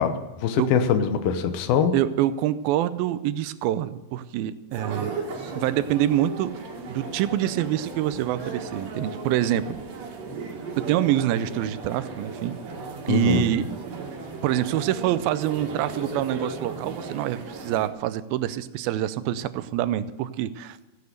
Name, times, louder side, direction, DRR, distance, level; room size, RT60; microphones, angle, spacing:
voice 1, 0.0-1.9 13.1-13.4, left 7 dB, 80° left, 9 dB, 2.7 m, -23 dB
voice 2, 1.9-5.1 5.5-6.5 6.9-9.8 10.8-12.5 13.0-13.7 14.4-20.8, right 12 dB, 85° right, 14 dB, 2.4 m, -26 dB
sound 1, 4.7-17.9, right 4 dB, 65° right, 3.5 m, -36 dB
15.0 x 9.5 x 6.6 m, 1.1 s
omnidirectional pair, 4.3 m